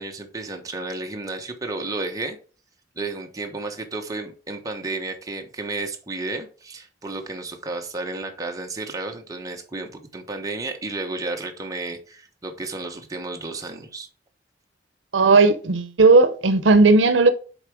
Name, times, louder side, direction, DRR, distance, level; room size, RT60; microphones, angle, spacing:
voice 1, 0.0-2.4 2.9-14.1, right 2 dB, 20° right, 1.2 m, -32 dB
voice 2, 15.1-17.3, right 3 dB, 80° right, 0.7 m, -15 dB
7.3 x 4.1 x 4.7 m
head